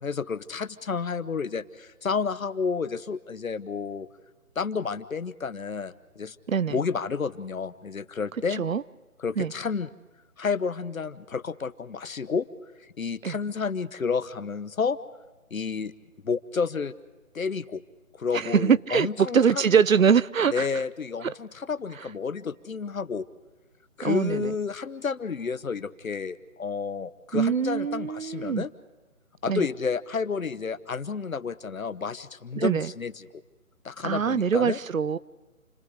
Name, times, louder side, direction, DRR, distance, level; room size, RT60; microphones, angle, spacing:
voice 1, 0.0-4.1 4.6-6.4 6.7-8.6 9.2-9.9 10.4-12.5 13.0-15.0 15.5-15.9 16.2-16.9 17.3-17.8 18.2-19.7 20.5-23.3 24.0-28.7 29.4-33.4 33.8-34.8, left 5 dB, 70° left, 1.1 m, -30 dB
voice 2, 6.5-6.8 8.5-8.8 9.4-9.5 13.2-13.3 18.3-20.7 24.0-24.5 27.3-28.6 29.5-29.7 32.6-32.9 34.0-35.2, right 7 dB, 70° right, 0.7 m, -23 dB
29.0 x 20.5 x 4.9 m
figure-of-eight pair, 165°, 42 cm